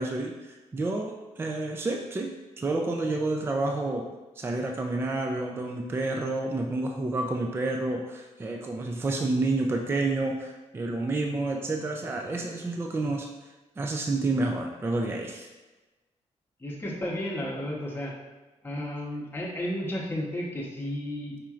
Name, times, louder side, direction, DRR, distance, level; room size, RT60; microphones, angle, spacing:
voice 1, 0.0-2.3 2.6-4.1 4.4-13.3 13.8-15.5, right 2 dB, 20° right, 2 dB, 0.3 m, -29 dB
voice 2, 16.6-18.1 18.6-21.4, left 1 dB, 20° left, -3 dB, 0.9 m, -33 dB
5.0 x 4.3 x 2.4 m, 1.2 s
wide cardioid pair, 150°, 12 cm